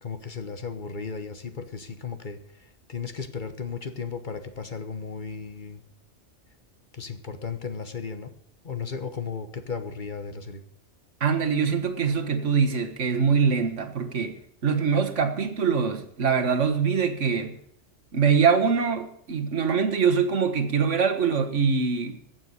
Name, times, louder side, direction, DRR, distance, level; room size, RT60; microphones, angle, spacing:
voice 1, 0.0-5.8 6.9-8.3 8.6-10.6, left 5 dB, 45° left, 9 dB, 1.2 m, -35 dB
voice 2, 11.2-14.4 14.6-17.5 18.1-22.2, right 6 dB, 85° right, 6 dB, 1.8 m, -23 dB
15.5 x 7.0 x 8.2 m, 0.70 s
omnidirectional pair, 1.2 m